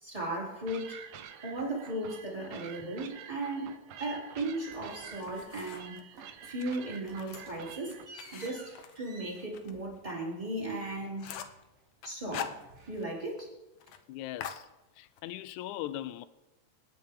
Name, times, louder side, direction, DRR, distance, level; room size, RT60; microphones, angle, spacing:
voice 1, 0.0-1.0 1.4-6.0 6.4-8.0 8.3-11.4 12.0-12.6 12.9-13.5, right 1 dB, 10° right, 3.2 m, -36 dB
sound 1, 0.7-8.1, right 9 dB, 80° right, 2.2 m, -48 dB
sound 2, 4.7-5.9 6.2-6.6 6.9-11.9 12.2-13.5, right 3 dB, 60° right, 3.2 m, -55 dB
sound 3, 4.9-6.0 6.5-9.7 10.1-10.2 10.6-10.7 10.9-11.6 12.0-13.1 13.4-13.5 13.8-14.0 14.4-15.2, left 8 dB, 70° left, 1.5 m, -43 dB
voice 2, 14.1-16.3, left 13 dB, 85° left, 2.0 m, -40 dB
26.5 x 9.5 x 3.7 m
omnidirectional pair, 3.4 m